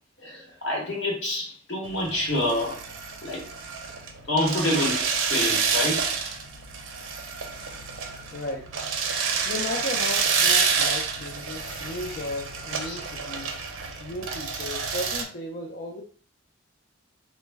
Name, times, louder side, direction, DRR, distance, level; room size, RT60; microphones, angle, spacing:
voice 1, 0.2-2.8 3.2-3.4 4.3-6.1 11.6-12.3 12.8-13.0, left 1 dB, 65° left, -2 dB, 0.9 m, -28 dB
sound 1, 1.8-15.2, right 5 dB, 85° right, 0.5 m, -28 dB
voice 2, 8.3-8.7 9.5-13.5 14.0-16.0, left 1 dB, 50° left, -1 dB, 0.4 m, -35 dB
2.1 x 2.1 x 3.3 m, 0.43 s
head